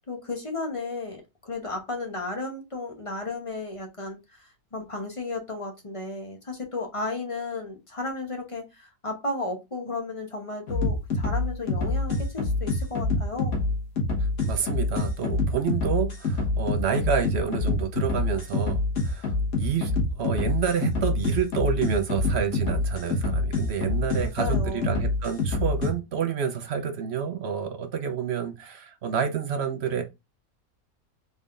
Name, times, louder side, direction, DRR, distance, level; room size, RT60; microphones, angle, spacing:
voice 1, 0.1-13.5 24.2-24.9, left 2 dB, 25° left, 0.9 m, -34 dB
sound 1, 10.7-25.9, left 2 dB, 70° left, 1.7 m, -26 dB
voice 2, 14.4-30.0, right 7 dB, 60° right, 0.8 m, -29 dB
4.1 x 3.6 x 2.5 m
omnidirectional pair, 1.6 m